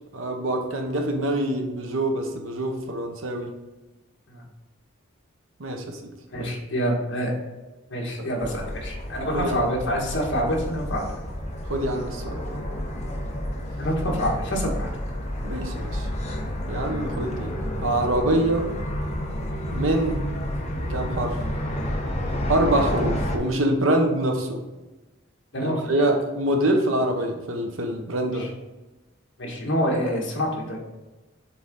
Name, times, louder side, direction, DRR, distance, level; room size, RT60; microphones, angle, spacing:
voice 1, 0.1-3.5 5.6-6.0 6.4-6.5 8.2-8.3 9.3-9.7 11.7-12.5 15.4-16.1 16.7-17.5 17.8-18.7 19.7-20.2 20.9-21.4 22.5-24.6 25.6-28.5, right 1 dB, 70° right, 3 dB, 1.0 m, -25 dB
voice 2, 6.3-7.3 7.9-11.1 13.8-14.9 25.5-26.1 28.3-28.5 29.4-30.8, equal, 60° left, -1 dB, 1.6 m, -26 dB
sound 1, 8.4-23.4, equal, 35° left, 0.9 m, -30 dB
6.9 x 3.9 x 3.7 m, 1.1 s
head